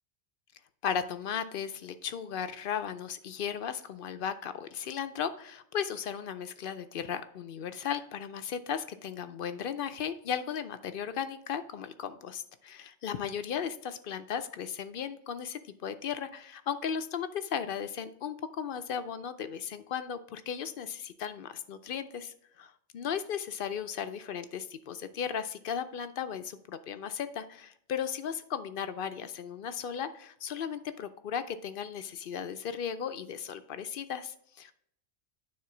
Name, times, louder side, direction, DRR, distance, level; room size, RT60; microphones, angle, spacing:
voice 1, 0.8-34.7, left 8 dB, 60° left, 11 dB, 0.6 m, -36 dB
9.5 x 3.7 x 5.9 m, 0.70 s
omnidirectional pair, 1.2 m